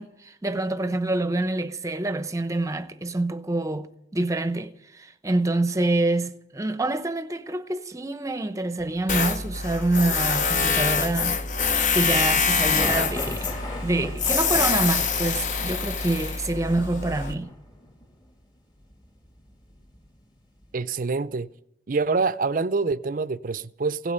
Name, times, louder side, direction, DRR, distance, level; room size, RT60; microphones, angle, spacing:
voice 1, 0.0-13.6 13.8-17.5, right 2 dB, 20° right, 0.8 m, -26 dB
sound 1, 8.8-9.4 12.5-20.2 20.6-20.8, left 1 dB, 25° left, 2.0 m, -39 dB
Tools, 9.1-17.3, left 5 dB, 45° left, 0.9 m, -25 dB
voice 2, 20.7-21.5 21.9-24.1, right 4 dB, 50° right, 0.5 m, -26 dB
16.5 x 8.7 x 9.5 m
head